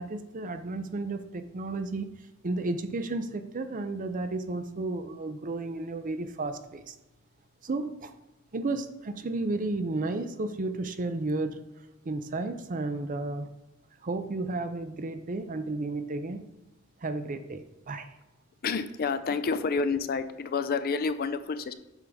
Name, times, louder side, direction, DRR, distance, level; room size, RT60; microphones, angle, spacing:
voice 1, 0.0-7.0 7.6-8.1 8.5-11.6 12.0-13.5 14.0-16.4 17.0-18.1, right 2 dB, 40° right, 10 dB, 0.5 m, -33 dB
voice 2, 18.6-21.7, left 5 dB, 45° left, 12 dB, 0.4 m, -29 dB
8.0 x 5.4 x 3.5 m, 1.0 s
head